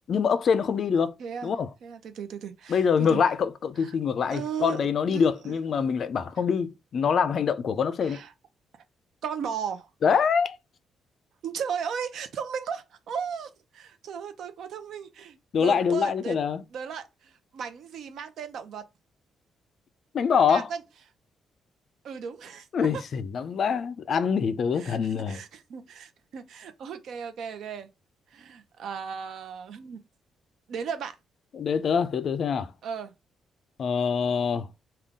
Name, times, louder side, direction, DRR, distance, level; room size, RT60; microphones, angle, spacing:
voice 1, 0.1-1.2 1.4-1.7 2.7-8.2 10.0-10.6 15.5-16.6 20.1-20.7 22.7-25.4 31.5-32.7 33.8-34.7, left 6 dB, 50° left, 0.3 m, -25 dB
voice 2, 1.2-1.5 1.8-3.2 3.8-3.9 4.3-5.5 8.0-8.3 9.2-9.9 11.4-16.4 16.7-18.8 20.5-20.8 22.0-22.7 24.8-25.0 25.3-27.9 28.3-30.0 30.7-31.1 32.8-33.1, right 7 dB, 65° right, 0.6 m, -36 dB
3.7 x 2.3 x 3.5 m
cardioid pair, 135°, 0 cm